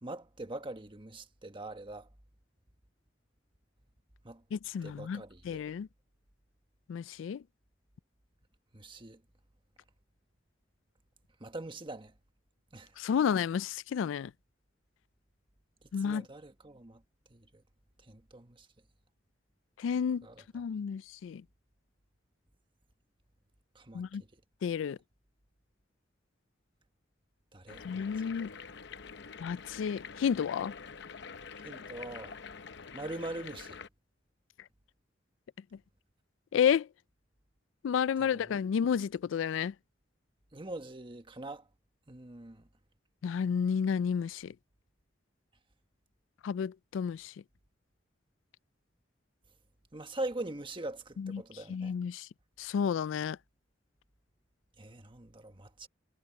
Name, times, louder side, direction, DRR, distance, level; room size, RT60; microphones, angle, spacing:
voice 1, 0.0-2.1 4.2-4.4 4.8-5.6 8.7-9.2 11.4-12.1 12.7-12.9 16.0-17.0 17.3-17.6 18.1-18.7 20.2-20.4 23.7-24.0 27.5-28.1 31.6-32.4 32.9-33.8 38.2-38.6 40.5-41.6 42.1-42.6 49.9-51.9 54.8-55.9, right 2 dB, 25° right, 1.4 m, -42 dB
voice 2, 4.5-5.9 6.9-7.4 13.0-14.3 15.9-16.3 19.8-20.3 20.5-21.4 23.9-24.2 24.6-25.0 27.8-28.5 29.4-30.7 36.5-36.9 37.8-39.7 43.2-44.5 46.4-47.3 51.2-51.4 51.7-52.3 52.6-53.4, left 7 dB, 85° left, 0.3 m, -31 dB
sound 1, 27.7-33.9, left 5 dB, 65° left, 0.8 m, -46 dB
head